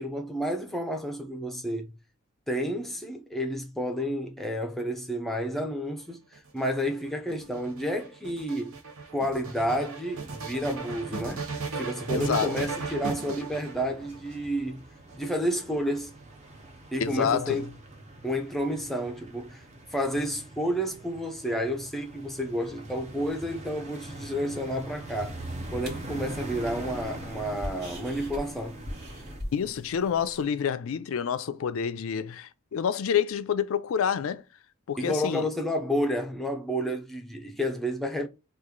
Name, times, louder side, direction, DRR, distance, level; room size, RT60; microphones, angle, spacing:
voice 1, 0.0-1.9 2.5-8.8 9.1-14.8 15.1-16.1 16.9-17.7 18.2-19.6 19.9-25.4 25.7-28.8 35.0-38.3, equal, ahead, 0.5 m, -30 dB
sound 1, 6.3-14.3 15.1-16.0, right 4 dB, 75° right, 0.8 m, -37 dB
sound 2, 10.1-29.4, right 1 dB, 30° right, 0.7 m, -43 dB
voice 2, 12.1-12.7 17.0-17.7 29.5-34.4 34.9-35.5, left 7 dB, 70° left, 0.4 m, -28 dB
sound 3, 25.2-30.4, equal, 50° right, 1.6 m, -42 dB
3.0 x 2.4 x 3.6 m
head